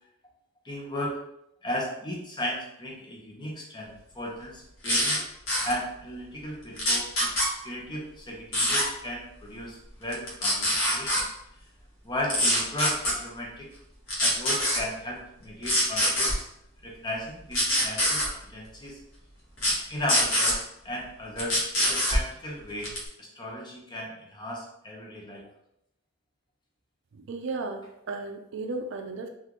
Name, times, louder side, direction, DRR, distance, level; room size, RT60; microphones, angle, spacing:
voice 1, 0.6-1.2 1.6-5.2 5.6-7.3 7.6-11.3 12.0-13.7 14.2-16.5 16.8-19.0 19.9-22.9 23.2-25.5, left 1 dB, 20° left, -2 dB, 0.6 m, -35 dB
sound 1, 4.8-5.2 5.5-5.7 6.8-7.5 8.5-8.8 10.1-11.2 12.3-13.1 14.1-14.8 15.6-16.3 17.5-18.3 19.6-19.7 20.1-20.5 21.4-22.2 22.8-23.1, equal, 65° left, 1.1 m, -24 dB
voice 2, 27.1-29.3, right 3 dB, 60° right, 4 dB, 0.4 m, -35 dB
3.6 x 2.4 x 2.9 m, 0.79 s
head